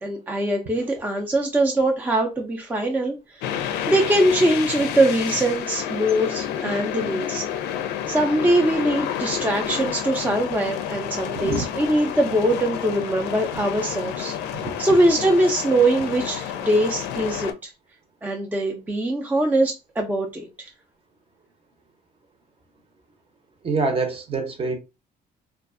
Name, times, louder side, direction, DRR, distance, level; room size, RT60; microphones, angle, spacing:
voice 1, 0.0-7.5 8.1-17.7 18.2-20.7, right 1 dB, 10° right, 0.4 m, -22 dB
sound 1, 3.4-17.5, left 9 dB, 90° left, 0.4 m, -30 dB
voice 2, 11.3-11.6 14.6-14.7 23.6-24.8, right 3 dB, 35° right, 0.7 m, -25 dB
2.5 x 2.3 x 2.4 m
cardioid pair, 110°, 17 cm